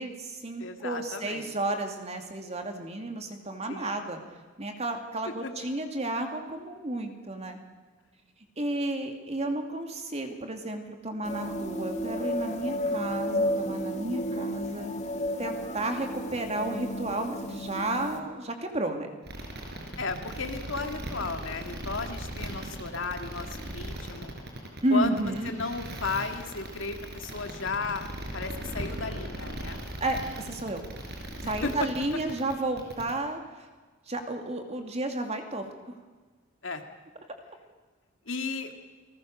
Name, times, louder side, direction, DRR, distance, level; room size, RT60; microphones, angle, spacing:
voice 1, 0.0-4.2 4.6-7.6 8.6-14.9 15.4-19.1 24.8-25.5 30.0-30.8 31.4-33.4 34.1-36.0, right 2 dB, 35° right, 5 dB, 2.6 m, -32 dB
voice 2, 0.6-1.5 3.7-4.0 12.7-13.1 20.0-24.3 24.9-28.1 28.3-29.8 31.6-31.7 36.6-36.8 38.3-38.7, left 4 dB, 70° left, 6 dB, 2.3 m, -34 dB
sound 1, 11.2-18.2, left 1 dB, 35° left, 2.0 m, -32 dB
sound 2, 19.2-33.1, right 1 dB, 55° right, 5.1 m, -38 dB
29.0 x 19.5 x 6.6 m, 1.4 s
head